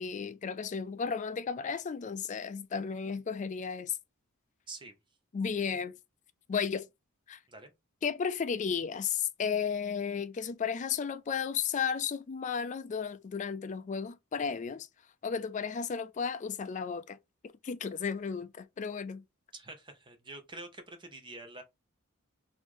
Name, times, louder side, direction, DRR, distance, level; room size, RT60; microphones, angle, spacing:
voice 1, 0.0-4.0 5.3-6.0 6.5-6.9 7.3-7.4 8.0-14.9 15.2-17.2 17.6-19.2, left 6 dB, 35° left, 0.3 m, -34 dB
voice 2, 4.7-5.0 7.5-7.7 19.5-21.6, right 2 dB, 20° right, 0.8 m, -46 dB
3.1 x 2.6 x 3.6 m
head